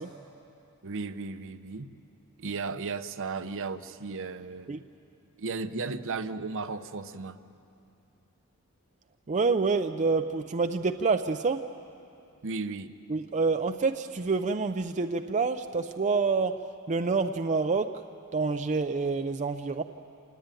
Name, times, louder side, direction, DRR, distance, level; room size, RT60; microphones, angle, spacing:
voice 1, 0.8-1.9 2.4-4.8 5.4-7.4 12.4-12.9, right 4 dB, 60° right, 10 dB, 0.8 m, -35 dB
voice 2, 9.3-11.6 13.1-18.0 18.3-19.8, right 4 dB, 35° right, 7 dB, 0.5 m, -27 dB
27.0 x 19.0 x 9.1 m, 2.6 s
head